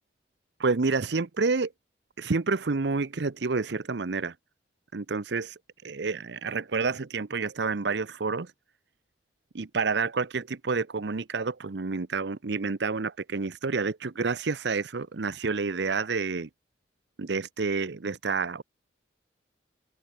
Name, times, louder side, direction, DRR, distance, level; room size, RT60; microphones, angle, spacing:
voice 1, 0.6-1.7 2.2-4.3 4.9-8.5 9.5-16.5 17.2-18.6, right 4 dB, 70° right, 0.7 m, -29 dB
open air
head